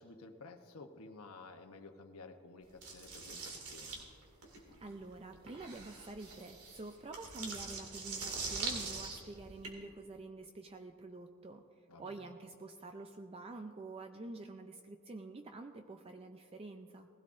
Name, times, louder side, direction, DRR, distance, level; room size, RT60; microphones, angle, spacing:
voice 1, 0.0-4.0 11.9-12.3, left 3 dB, 80° left, 6 dB, 0.9 m, -53 dB
sound 1, 2.8-9.7, right 4 dB, 85° right, 2.2 m, -43 dB
voice 2, 4.8-11.6 12.0-17.1, right 2 dB, 25° right, 6 dB, 0.4 m, -48 dB
19.5 x 16.0 x 2.6 m, 2.4 s
head